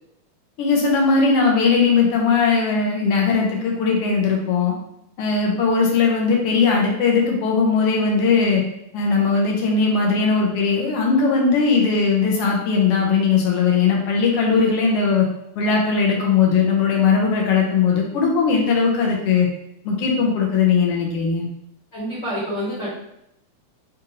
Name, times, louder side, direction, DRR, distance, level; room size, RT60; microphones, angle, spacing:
voice 1, 0.6-4.7 5.2-8.6 8.9-15.3 15.6-19.5 19.8-21.5, left 5 dB, 75° left, -1 dB, 1.4 m, -19 dB
voice 2, 21.9-22.9, equal, 45° left, -9 dB, 1.6 m, -27 dB
5.0 x 2.6 x 2.8 m, 0.78 s
omnidirectional pair, 3.3 m